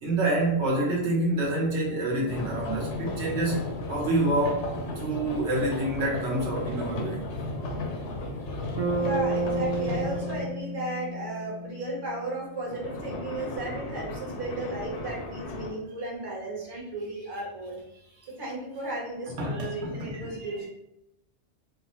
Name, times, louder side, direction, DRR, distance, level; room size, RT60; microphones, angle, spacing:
voice 1, 0.0-4.7 5.0-7.3 19.3-20.7, right 1 dB, 85° right, -3 dB, 1.1 m, -27 dB
sound 1, 2.3-10.5 12.7-15.7, left 2 dB, 90° left, 0.9 m, -35 dB
Bass guitar, 8.8-12.9, right 2 dB, 65° right, 1.0 m, -31 dB
voice 2, 9.0-17.8 18.4-20.7, right 2 dB, 25° right, -4 dB, 0.7 m, -35 dB
3.3 x 2.1 x 2.8 m, 0.85 s
omnidirectional pair, 1.1 m